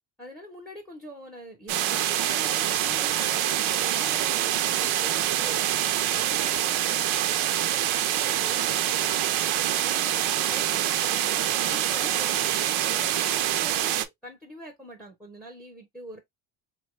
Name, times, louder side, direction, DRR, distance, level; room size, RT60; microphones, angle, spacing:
voice 1, 0.2-5.8 6.2-7.4 7.8-8.8 9.5-12.5 12.9-16.2, equal, ahead, 0.6 m, -44 dB
sound 1, 1.7-14.1, right 12 dB, 80° right, 0.6 m, -25 dB
3.5 x 2.2 x 2.9 m
cardioid pair, 155°, 48 cm